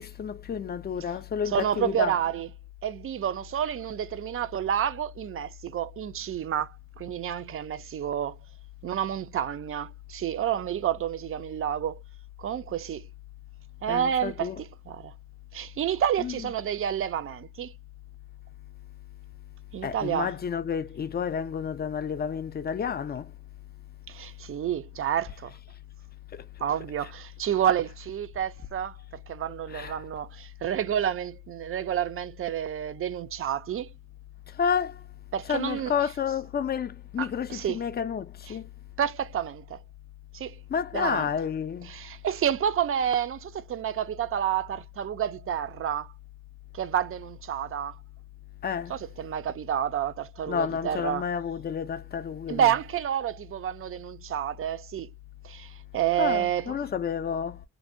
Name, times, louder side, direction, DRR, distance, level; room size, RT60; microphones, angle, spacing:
voice 1, 0.0-2.1 13.9-14.6 16.2-16.5 19.8-23.3 26.3-26.4 29.7-30.0 34.5-35.0 35.5-38.7 40.7-41.9 48.6-49.0 50.5-52.7 56.2-57.6, left 7 dB, 35° left, 0.4 m, -30 dB
voice 2, 1.5-2.5 2.8-8.3 8.8-12.0 12.4-13.1 13.8-15.1 15.5-17.7 19.7-20.3 24.1-25.5 26.6-28.9 29.3-33.9 35.3-35.9 37.2-37.8 38.5-38.6 39.0-39.8 40.3-40.6 40.9-41.3 41.9-46.1 46.7-48.0 48.9-51.2 52.5-55.1 55.4-56.8, right 9 dB, 50° right, 0.4 m, -29 dB
2.6 x 2.1 x 2.5 m
cardioid pair, 95°, 29 cm